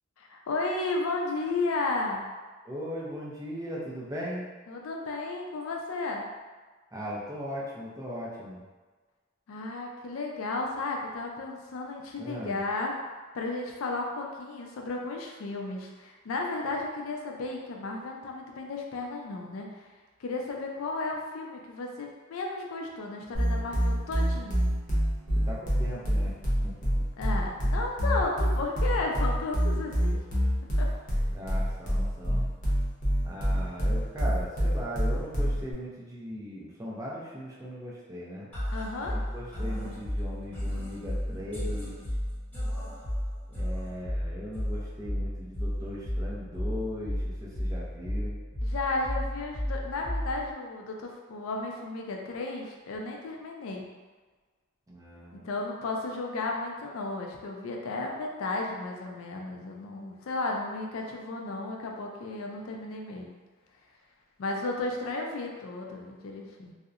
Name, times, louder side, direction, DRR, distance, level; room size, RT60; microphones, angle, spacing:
voice 1, 0.2-2.2 4.7-6.3 9.5-12.9 13.3-19.8 20.2-24.7 27.2-30.2 30.8-30.9 38.7-39.1 48.6-53.9 55.3-63.4 64.4-66.7, left 3 dB, 80° left, 0 dB, 0.4 m, -34 dB
voice 2, 2.6-4.5 6.9-8.6 12.2-12.6 25.3-26.3 26.6-26.9 31.3-32.4 33.2-38.5 39.1-42.0 43.5-48.4 54.9-55.5, equal, 15° right, -6 dB, 0.5 m, -38 dB
sound 1, 23.3-35.7, equal, 40° left, 0.7 m, -26 dB
sound 2, 38.5-50.5, equal, 10° left, 1.2 m, -33 dB
2.7 x 2.0 x 2.4 m, 1.3 s
head